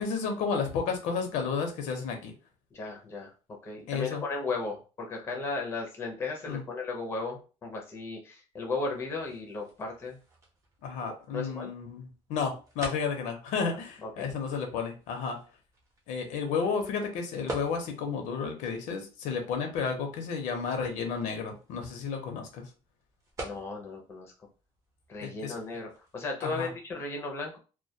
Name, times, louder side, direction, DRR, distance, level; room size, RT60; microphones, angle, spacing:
voice 1, 0.0-2.3 3.9-4.2 6.5-6.6 10.8-15.4 16.1-22.7 25.2-25.5 26.4-26.7, left 5 dB, 80° left, 4 dB, 0.6 m, -32 dB
voice 2, 2.7-3.3 3.6-10.2 11.0-11.7 14.0-14.3 23.4-24.3 25.1-27.6, left 3 dB, 20° left, 1 dB, 0.5 m, -35 dB
sound 1, 8.5-26.2, right 2 dB, 25° right, 0.6 m, -49 dB
2.2 x 2.2 x 2.6 m, 0.34 s
cardioid pair, 165°, 13 cm